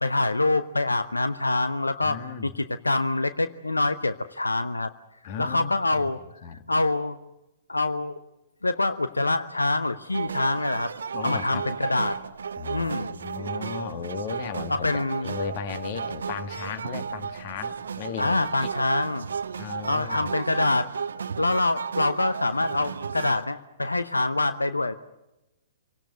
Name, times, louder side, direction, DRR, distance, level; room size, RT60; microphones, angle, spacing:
voice 1, 0.0-4.9 5.4-6.2 6.5-7.2 7.7-8.2 8.6-10.9 11.2-12.2 12.7-13.2 14.7-15.4 18.2-19.3 19.9-20.9 21.4-24.9, left 2 dB, 90° left, 13 dB, 0.8 m, -25 dB
voice 2, 2.1-2.5 5.2-6.1 6.4-6.6 11.1-11.6 12.6-18.7 19.6-20.3, left 7 dB, 45° left, 10 dB, 1.9 m, -36 dB
sound 1, 10.1-23.4, right 6 dB, 70° right, 0.7 m, -34 dB
27.0 x 18.0 x 8.1 m, 0.98 s
figure-of-eight pair, 115°, 0 cm